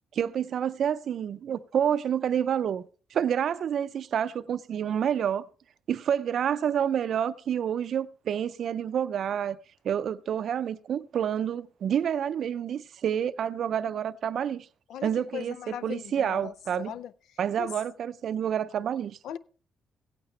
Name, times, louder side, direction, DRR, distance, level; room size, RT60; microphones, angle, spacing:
voice 1, 0.1-2.8 3.1-5.5 5.9-9.6 9.8-14.7 15.0-16.9 17.4-19.2, right 9 dB, 65° right, 0.5 m, -28 dB
voice 2, 14.9-17.1 17.6-17.7 19.2-19.4, left 9 dB, 80° left, 0.5 m, -38 dB
16.0 x 8.9 x 3.2 m
cardioid pair, 90°, 0 cm